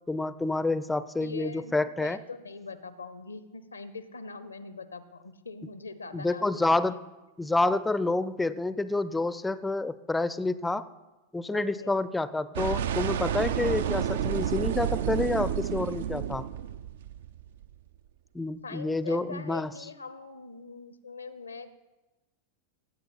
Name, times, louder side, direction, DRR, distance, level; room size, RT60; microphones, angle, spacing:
voice 1, 0.1-2.2 6.1-7.0 7.4-10.8 11.3-16.4 18.3-19.7, left 2 dB, 10° left, 15 dB, 0.4 m, -28 dB
voice 2, 1.2-6.7 11.5-12.0 18.6-21.7, left 4 dB, 80° left, 14 dB, 0.6 m, -42 dB
sound 1, 12.5-17.7, right 9 dB, 60° right, 0.4 m, -30 dB
16.5 x 7.9 x 4.1 m, 1.1 s
figure-of-eight pair, 90°, 0 cm